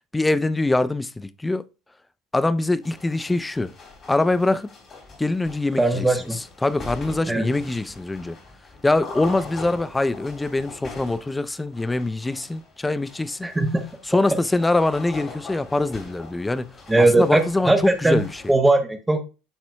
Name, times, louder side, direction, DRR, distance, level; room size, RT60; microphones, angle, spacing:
voice 1, 0.1-1.6 2.3-3.7 4.1-4.7 5.2-6.1 6.6-8.4 8.8-13.5 14.1-16.7 17.0-17.7 18.0-18.5, left 2 dB, 15° left, 0.5 m, -23 dB
sound 1, 2.8-18.6, left 3 dB, 40° left, 3.4 m, -42 dB
voice 2, 5.8-6.4 7.3-7.5 13.4-13.8 16.9-18.2 18.5-19.2, right 2 dB, 10° right, 1.0 m, -19 dB
10.0 x 4.3 x 2.2 m
hypercardioid pair, 75°, 0 cm